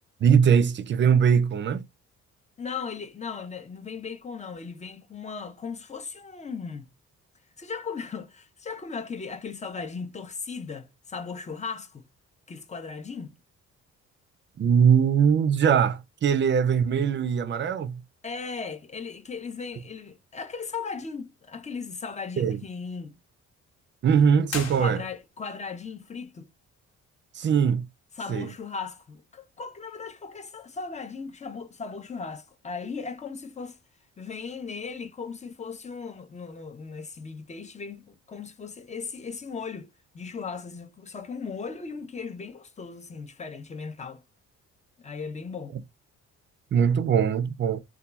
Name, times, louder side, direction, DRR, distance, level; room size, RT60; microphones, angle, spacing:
voice 1, 0.2-1.8 14.6-18.0 22.4-22.6 24.0-25.0 27.3-27.9 28.3-28.5 46.7-47.8, right 7 dB, 40° right, 0.4 m, -21 dB
voice 2, 2.6-6.9 7.6-12.0 12.5-13.4 18.2-23.2 24.8-26.5 28.2-33.8 34.2-39.9 40.1-44.2 45.0-45.7, left 5 dB, 25° left, 0.5 m, -37 dB
sound 1, 24.4-25.5, left 5 dB, 60° left, 1.1 m, -37 dB
2.8 x 2.2 x 2.2 m
cardioid pair, 90°, 30 cm